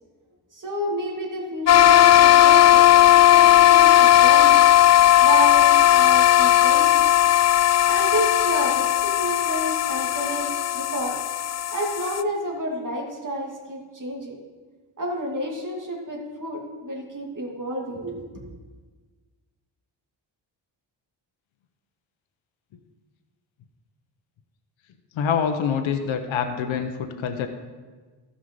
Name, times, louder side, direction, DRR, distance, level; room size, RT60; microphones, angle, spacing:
voice 1, 0.5-2.9 3.1-4.6 5.2-7.0 7.9-11.2 11.7-14.4 15.0-18.5, right 1 dB, 40° right, -1 dB, 2.5 m, -30 dB
sound 1, 1.7-12.2, left 13 dB, 35° left, 0.4 m, -16 dB
voice 2, 25.1-27.5, left 7 dB, 80° left, 6 dB, 0.9 m, -25 dB
13.0 x 5.6 x 5.4 m, 1.4 s
cardioid pair, 65°, 46 cm